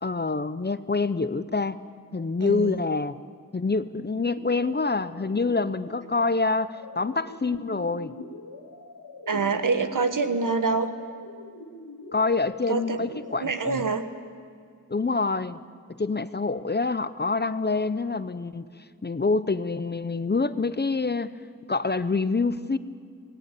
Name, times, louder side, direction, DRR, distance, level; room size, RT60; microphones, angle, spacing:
voice 1, 0.0-1.8 2.1-3.2 3.5-8.1 12.1-13.9 14.9-15.6 16.0-18.7 19.0-21.4 21.7-22.8, left 3 dB, 30° left, 14 dB, 0.7 m, -26 dB
voice 2, 2.4-2.7 9.3-10.9 12.7-14.0, right 4 dB, 65° right, 9 dB, 1.6 m, -26 dB
sound 1, 4.3-13.8, left 2 dB, 85° left, 2.2 m, -44 dB
27.0 x 18.5 x 8.4 m, 2.2 s
wide cardioid pair, 110°, 35 cm